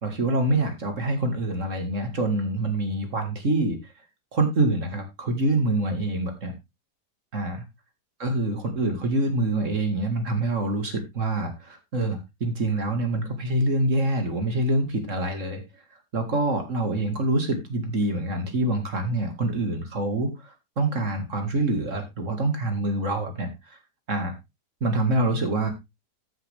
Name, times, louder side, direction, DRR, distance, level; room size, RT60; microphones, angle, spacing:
voice 1, 0.0-3.9 4.3-6.5 7.3-7.6 8.2-15.6 16.1-23.8 24.1-24.3 24.8-25.7, right 2 dB, 50° right, 5 dB, 2.3 m, -26 dB
14.0 x 6.4 x 3.5 m, 0.22 s
omnidirectional pair, 1.8 m